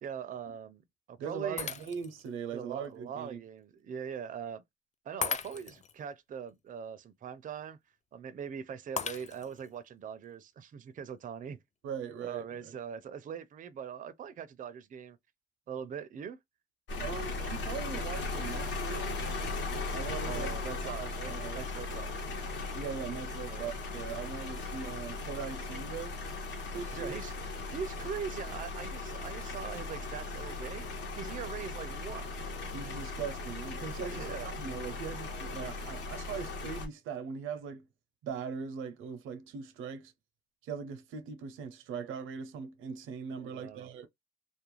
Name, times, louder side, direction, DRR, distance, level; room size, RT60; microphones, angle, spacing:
voice 1, 0.0-1.7 2.5-4.6 5.0-7.8 8.1-11.6 12.2-15.2 15.7-16.4 20.2-22.3 23.5-23.7 26.9-30.9 31.2-32.3 34.1-34.5 43.4-43.9, right 7 dB, 40° right, 0.4 m, -42 dB
voice 2, 1.2-3.4 11.8-12.8 17.0-19.2 19.9-20.5 20.8-21.6 22.7-26.1 26.7-27.2 32.7-37.9 38.2-40.1 40.6-44.1, right 6 dB, 90° right, 0.6 m, -40 dB
Shatter, 1.6-2.3 2.8-2.9 5.2-5.9 9.0-9.7, left 6 dB, 35° left, 0.5 m, -37 dB
sound 1, 16.9-36.9, left 3 dB, 65° left, 1.1 m, -38 dB
2.4 x 2.1 x 3.0 m
cardioid pair, 90°, 20 cm